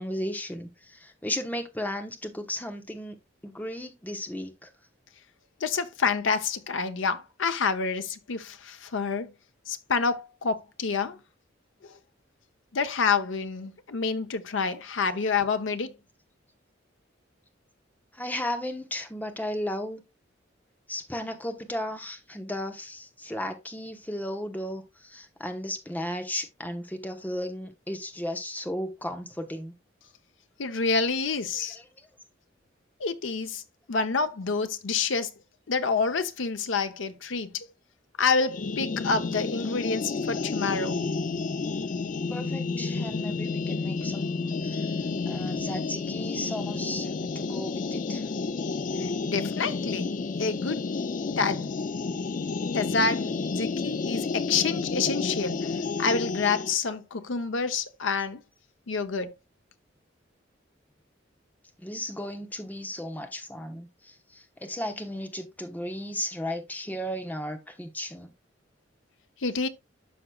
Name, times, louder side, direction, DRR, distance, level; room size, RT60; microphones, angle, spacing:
voice 1, 0.0-3.2 3.4-4.7 18.1-20.0 20.9-29.7 31.6-32.1 42.3-45.0 45.2-48.3 61.8-68.3, left 1 dB, 10° left, 0.9 m, -35 dB
voice 2, 5.6-9.3 9.7-11.2 12.7-15.9 30.6-31.8 33.0-33.6 33.9-35.3 35.7-37.7 38.2-41.0 49.0-50.1 50.4-50.8 51.4-51.7 52.7-58.4 58.9-59.3 69.4-69.7, left 5 dB, 85° left, 0.7 m, -28 dB
sound 1, 38.5-56.8, left 4 dB, 45° left, 0.4 m, -31 dB
12.0 x 4.9 x 2.3 m
head